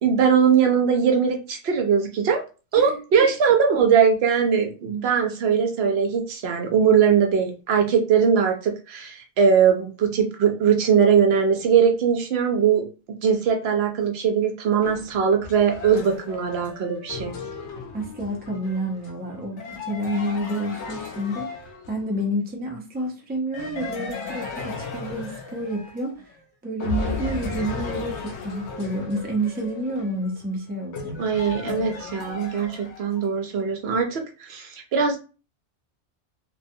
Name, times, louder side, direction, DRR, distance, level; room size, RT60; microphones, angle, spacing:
voice 1, 0.0-2.4 2.7-12.9 13.2-17.3 31.2-35.2, right 7 dB, 70° right, 0.8 m, -20 dB
voice 2, 2.8-3.3 17.9-26.3 26.6-31.2, right 1 dB, 10° right, 0.5 m, -29 dB
sound 1, 14.8-22.2 23.5-26.4 26.8-33.3, left 4 dB, 85° left, 0.9 m, -35 dB
2.6 x 2.3 x 2.6 m
omnidirectional pair, 1.1 m